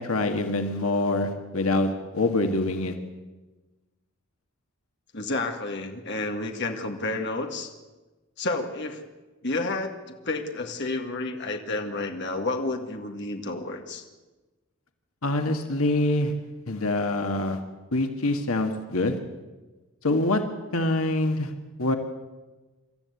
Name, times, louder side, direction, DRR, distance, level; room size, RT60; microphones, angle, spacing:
voice 1, 0.0-3.0 15.2-16.3 16.7-17.6 17.9-19.2 20.0-20.4 20.7-21.5 21.8-22.0, left 2 dB, 80° left, 5 dB, 1.7 m, -25 dB
voice 2, 5.1-7.7 8.4-9.0 9.4-10.0 10.3-14.0, left 2 dB, 55° left, 3 dB, 1.9 m, -30 dB
26.5 x 13.5 x 8.3 m, 1.2 s
head